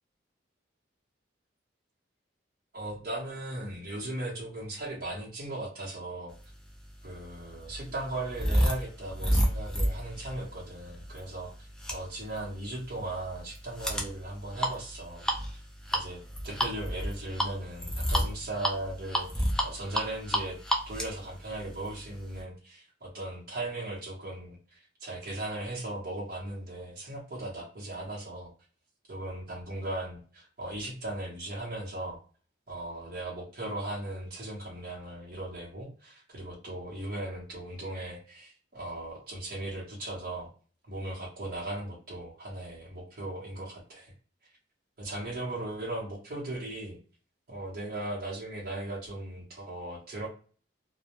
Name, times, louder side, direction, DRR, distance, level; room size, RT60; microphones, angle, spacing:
voice 1, 2.7-6.3 7.0-15.6 15.9-20.6 20.9-28.5 29.1-32.2 32.7-40.5 40.8-44.1 45.0-47.0 47.5-50.3, right 1 dB, 50° right, -4 dB, 0.8 m, -38 dB
sound 1, 6.7-22.4, equal, 5° left, 0.3 m, -31 dB
2.1 x 2.1 x 2.8 m, 0.41 s
head